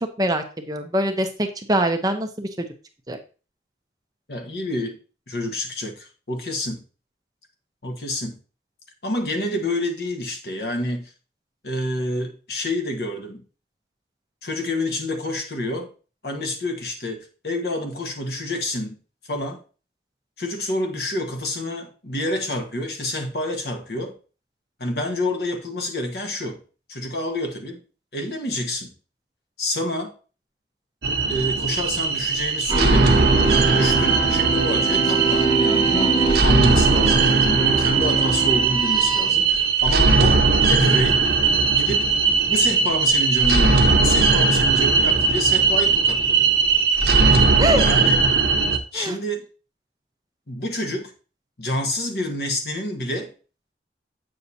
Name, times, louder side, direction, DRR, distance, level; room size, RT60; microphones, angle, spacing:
voice 1, 0.0-2.7 3.1-3.2 47.6-47.8 48.9-49.2, right 1 dB, 20° right, 0.7 m, -23 dB
voice 2, 4.3-5.0 5.3-6.8 7.8-8.4 9.0-11.1 11.6-13.4 14.4-15.9 16.2-19.0 19.3-19.6 20.4-24.2 24.8-26.6 26.9-27.8 28.1-28.9 29.6-30.1 31.3-33.2 33.7-41.2 41.8-42.2 42.5-46.5 47.7-48.2 48.9-49.5 50.5-51.1 51.6-53.3, left 1 dB, 65° left, 1.4 m, -28 dB
sound 1, 31.0-48.8, right 4 dB, 70° right, 0.9 m, -19 dB
sound 2, 32.7-39.3, right 3 dB, 35° left, 2.5 m, -24 dB
8.1 x 6.6 x 2.8 m
head